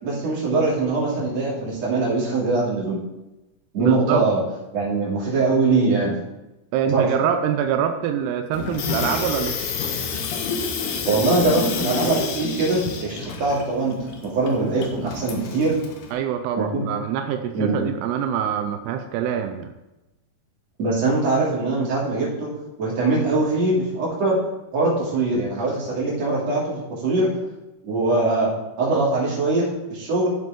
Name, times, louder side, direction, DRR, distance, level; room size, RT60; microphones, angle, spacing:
voice 1, 0.0-3.0 3.7-4.4 4.7-6.2 6.9-7.1 11.1-14.0 14.2-15.8 16.6-16.8 17.5-17.8 20.8-22.5 22.8-24.4 24.7-27.3 27.8-28.5 28.8-30.3, right 3 dB, 40° right, -6 dB, 3.5 m, -22 dB
voice 2, 3.8-4.2 6.7-9.6 16.1-19.7, right 8 dB, 90° right, 7 dB, 2.3 m, -25 dB
Water tap faucet / Sink (filling or washing), 8.5-16.1, left 5 dB, 70° left, 2.7 m, -29 dB
13.0 x 7.6 x 3.7 m, 0.98 s
omnidirectional pair, 5.5 m